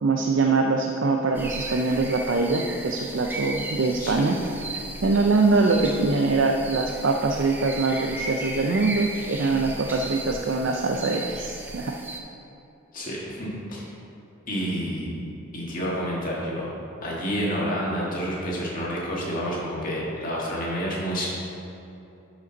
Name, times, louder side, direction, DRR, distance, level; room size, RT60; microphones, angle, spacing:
voice 1, 0.0-4.4 5.0-11.9, right 3 dB, 60° right, 2 dB, 0.5 m, -23 dB
sound 1, 1.3-12.2, right 2 dB, 10° right, 0.5 m, -36 dB
voice 2, 12.9-13.9 14.5-15.1 15.5-16.7 17.0-21.3, equal, 40° left, -5 dB, 1.7 m, -29 dB
11.0 x 5.2 x 4.0 m, 2.8 s
head